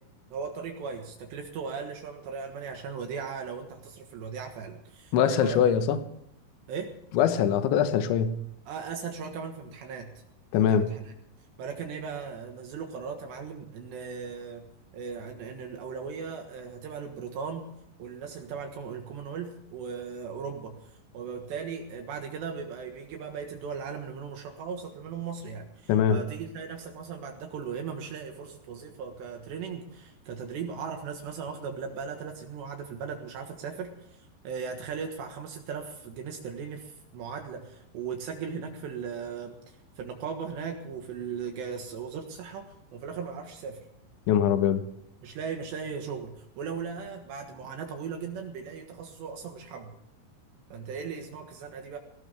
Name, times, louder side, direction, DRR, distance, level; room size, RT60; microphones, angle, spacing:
voice 1, 0.3-5.6 6.7-6.9 8.7-10.2 10.5-11.0 11.6-14.6 14.9-17.7 18.0-43.8 45.2-49.9 50.7-52.0, right 6 dB, 70° right, 3.4 m, -38 dB
voice 2, 5.1-6.0 7.1-8.4 10.5-10.9 25.9-26.2 44.3-44.8, left 8 dB, 75° left, 3.4 m, -23 dB
18.5 x 18.0 x 3.5 m
omnidirectional pair, 5.6 m